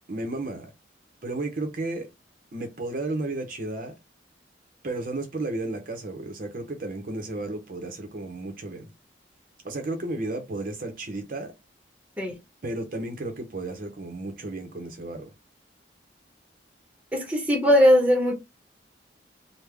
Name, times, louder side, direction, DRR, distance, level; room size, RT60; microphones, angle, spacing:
voice 1, 0.1-0.7 1.2-2.1 2.5-4.0 4.8-8.9 9.6-11.5 12.6-15.3, right 2 dB, 45° right, 0.7 m, -33 dB
voice 2, 17.1-18.3, equal, 5° right, 0.9 m, -19 dB
3.4 x 2.1 x 3.3 m
head